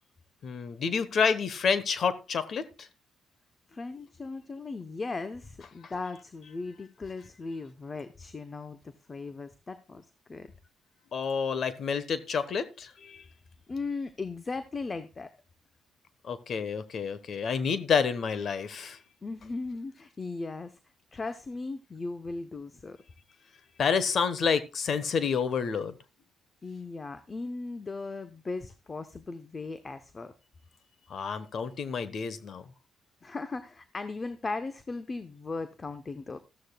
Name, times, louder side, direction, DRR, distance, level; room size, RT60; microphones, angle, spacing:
voice 1, 0.4-2.9 5.8-5.9 11.1-13.2 16.2-19.0 23.8-26.0 31.1-32.7, left 6 dB, 55° left, 1.2 m, -29 dB
voice 2, 3.7-10.5 13.7-15.3 19.2-20.8 21.1-23.0 26.6-30.3 33.2-36.4, left 3 dB, 30° left, 0.9 m, -37 dB
14.0 x 13.0 x 2.4 m
cardioid pair, 90°, 0 cm